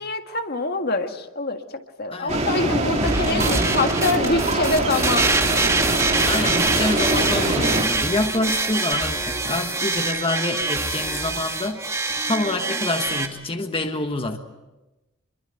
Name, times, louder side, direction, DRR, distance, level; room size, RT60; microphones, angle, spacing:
voice 1, 0.0-1.6 2.0-5.3, left 2 dB, 50° left, 6 dB, 1.7 m, -25 dB
voice 2, 2.1-2.5 3.2-3.5 6.3-14.4, left 2 dB, 25° left, 5 dB, 1.3 m, -27 dB
sound 1, 2.3-7.8, right 2 dB, 35° right, 4.2 m, -24 dB
sound 2, 3.0-13.3, right 3 dB, 15° right, 2.1 m, -24 dB
26.5 x 23.0 x 7.9 m, 1.0 s
head